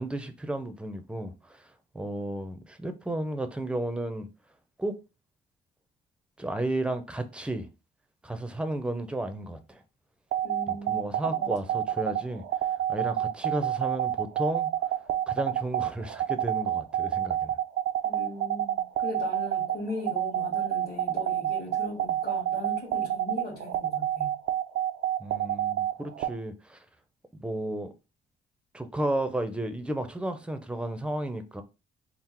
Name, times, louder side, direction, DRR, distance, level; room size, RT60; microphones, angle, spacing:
voice 1, 0.0-4.3 4.8-5.0 6.4-7.7 8.2-9.8 10.7-14.7 15.3-17.6 25.2-26.8 27.4-27.9 28.7-31.6, right 1 dB, 5° right, 0.6 m, -33 dB
sound 1, 10.3-26.3, right 11 dB, 80° right, 0.5 m, -28 dB
voice 2, 10.4-11.5 18.0-24.3, left 1 dB, 55° left, 1.7 m, -38 dB
3.7 x 2.0 x 4.3 m
cardioid pair, 90°, 20 cm